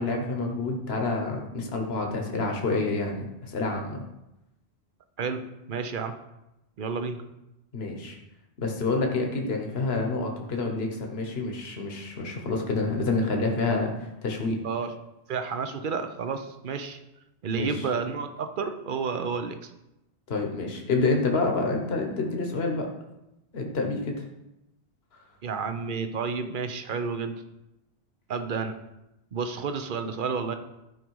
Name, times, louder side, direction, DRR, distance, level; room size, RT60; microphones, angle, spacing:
voice 1, 0.0-4.0 7.7-8.2 8.6-14.6 17.6-17.9 20.3-22.9 23.5-24.2, left 3 dB, 65° left, 2 dB, 1.4 m, -28 dB
voice 2, 5.7-6.2 6.8-7.2 14.6-14.9 15.3-17.0 17.4-19.7 25.4-27.3 28.3-28.8 29.3-30.5, right 5 dB, 50° right, 8 dB, 0.9 m, -30 dB
12.5 x 5.2 x 4.7 m, 0.92 s
omnidirectional pair, 1.1 m